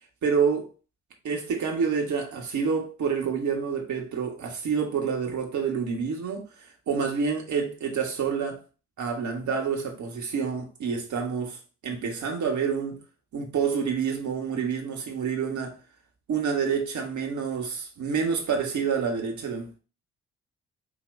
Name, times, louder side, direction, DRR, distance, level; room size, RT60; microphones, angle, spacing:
voice 1, 0.2-0.7 1.2-6.5 6.9-8.6 9.0-13.0 13.3-15.8 16.3-19.8, right 6 dB, 55° right, 1.5 m, -28 dB
6.9 x 2.8 x 2.7 m
hypercardioid pair, 40°, 34 cm